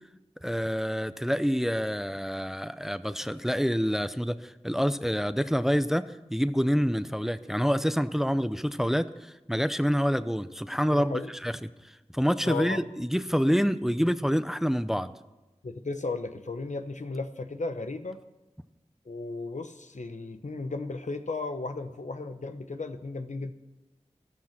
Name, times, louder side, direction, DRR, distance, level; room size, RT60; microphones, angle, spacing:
voice 1, 0.4-11.1 11.4-11.5 12.1-15.1, equal, 5° right, 13 dB, 0.6 m, -27 dB
voice 2, 10.9-11.3 12.5-12.8 15.6-18.2 19.1-23.5, left 3 dB, 85° left, 8 dB, 1.0 m, -35 dB
13.5 x 13.5 x 5.9 m, 1.0 s
wide cardioid pair, 55°, 12 cm